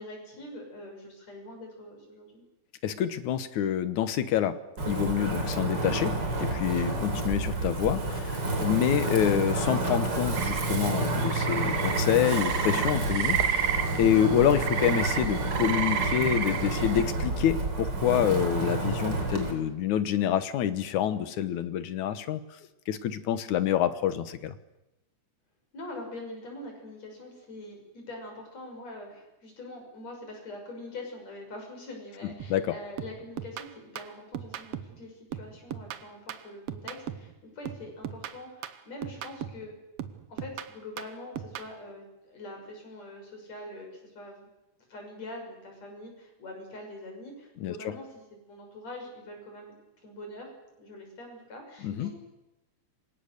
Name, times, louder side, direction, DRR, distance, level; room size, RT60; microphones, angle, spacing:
voice 1, 0.0-2.4 25.7-39.7 40.3-44.5 44.9-49.8 50.0-50.5 50.8-52.2, left 1 dB, 65° left, 2 dB, 7.4 m, -44 dB
voice 2, 2.8-4.6 4.9-22.4 22.9-24.5 32.5-32.7 47.6-48.0 51.8-52.2, left 10 dB, 85° left, 12 dB, 2.7 m, -27 dB
Wind, 4.8-19.5, right 2 dB, 35° right, 4.3 m, -30 dB
sound 1, 10.4-17.0, right 7 dB, 85° right, 3.3 m, -31 dB
sound 2, 32.4-32.7 33.0-35.0 35.3-37.3 37.6-39.7 40.0-41.7, right 9 dB, 60° right, 1.9 m, -39 dB
28.5 x 25.5 x 6.8 m, 0.94 s
omnidirectional pair, 3.3 m